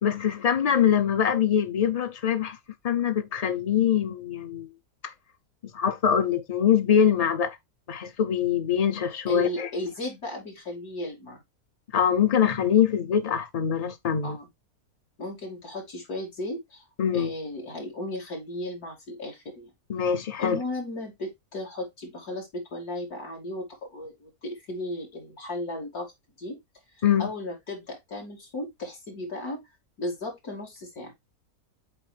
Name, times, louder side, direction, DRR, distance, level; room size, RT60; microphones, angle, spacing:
voice 1, 0.0-2.6 2.8-4.7 5.0-5.1 5.7-7.6 7.9-9.7 11.9-14.4 17.0-17.3 19.9-20.6 27.0-27.3, left 8 dB, 60° left, 0.4 m, -23 dB
voice 2, 9.3-11.4 14.2-14.5 15.2-16.8 17.1-19.7 20.4-26.1 26.4-26.6 26.9-29.6 30.0-31.1, left 1 dB, 85° left, 3.4 m, -35 dB
7.8 x 4.3 x 3.3 m
omnidirectional pair, 1.6 m